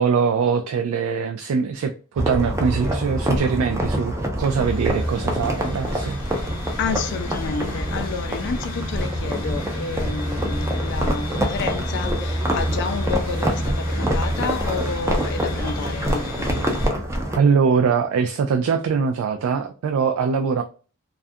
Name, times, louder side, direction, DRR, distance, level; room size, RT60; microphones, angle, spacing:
voice 1, 0.0-6.2 17.4-20.6, right 6 dB, 80° right, 0.3 m, -22 dB
sound 1, 2.2-17.4, equal, 15° right, 0.4 m, -25 dB
sound 2, 4.4-16.9, left 2 dB, 85° left, 0.9 m, -36 dB
voice 2, 6.8-16.8, left 5 dB, 55° left, 0.3 m, -30 dB
2.4 x 2.2 x 2.5 m
head